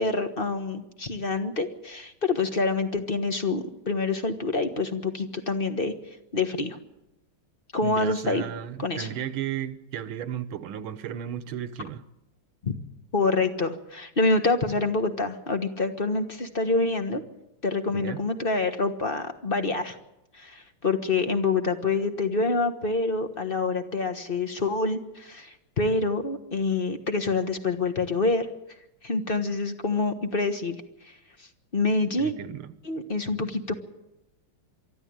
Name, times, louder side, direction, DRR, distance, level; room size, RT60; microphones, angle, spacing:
voice 1, 0.0-5.9 6.3-6.8 7.7-8.4 8.8-9.1 12.6-12.7 13.1-17.2 17.6-20.0 20.3-28.5 29.0-30.8 31.4-31.5 31.7-32.3 32.8-33.7, left 3 dB, 30° left, 1.3 m, -26 dB
voice 2, 7.8-12.0 17.9-18.2 32.2-32.7, right 9 dB, 75° right, 1.8 m, -34 dB
23.5 x 13.5 x 8.8 m
omnidirectional pair, 2.4 m